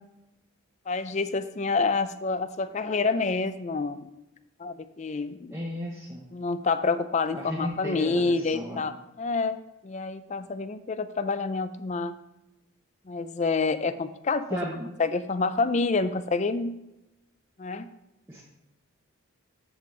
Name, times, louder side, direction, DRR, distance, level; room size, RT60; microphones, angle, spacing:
voice 1, 0.9-4.1 4.6-5.6 6.3-9.6 9.8-12.2 13.1-16.7 17.6-17.9, left 4 dB, 35° left, 12 dB, 0.4 m, -28 dB
voice 2, 5.5-6.3 7.3-8.9 14.5-14.9 18.3-18.4, equal, 15° right, -3 dB, 0.8 m, -35 dB
13.5 x 5.1 x 3.2 m, 0.95 s
head